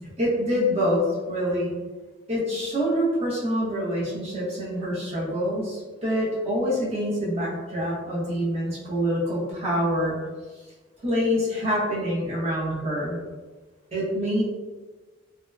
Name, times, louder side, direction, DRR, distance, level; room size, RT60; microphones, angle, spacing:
voice 1, 0.2-1.7 2.3-10.2 11.0-13.2 13.9-14.4, equal, 30° right, -7 dB, 0.8 m, -26 dB
2.7 x 2.1 x 2.2 m, 1.3 s
head